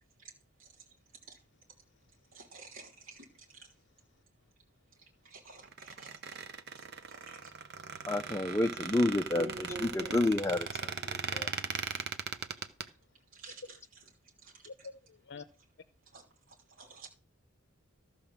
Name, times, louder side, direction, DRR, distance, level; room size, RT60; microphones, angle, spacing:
voice 1, 2.3-3.3 3.5-3.7 5.2-6.2 7.1-7.5 9.4-10.2 13.3-13.8 14.4-14.5 16.1-16.2 16.8-17.1, right 1 dB, 75° right, 3.2 m, -47 dB
Squeak, 5.6-12.8, right 6 dB, 50° right, 0.8 m, -39 dB
voice 2, 8.1-9.5 9.8-11.5, left 1 dB, 15° left, 0.5 m, -30 dB
voice 3, 14.6-15.4, left 4 dB, 55° left, 0.7 m, -47 dB
13.5 x 4.9 x 7.2 m
head